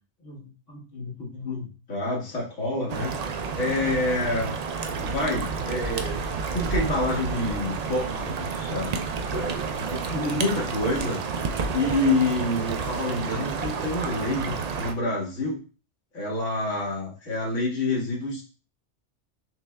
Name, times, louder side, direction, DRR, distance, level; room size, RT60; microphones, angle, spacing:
voice 1, 0.2-3.2 3.6-4.5 4.9-6.2 6.5-8.9 9.3-11.2 11.7-15.6 16.1-18.4, left 2 dB, 90° left, -3 dB, 1.7 m, -28 dB
sound 1, 2.9-14.9, right 5 dB, 70° right, 0.3 m, -30 dB
5.7 x 2.2 x 3.3 m, 0.36 s
omnidirectional pair, 1.2 m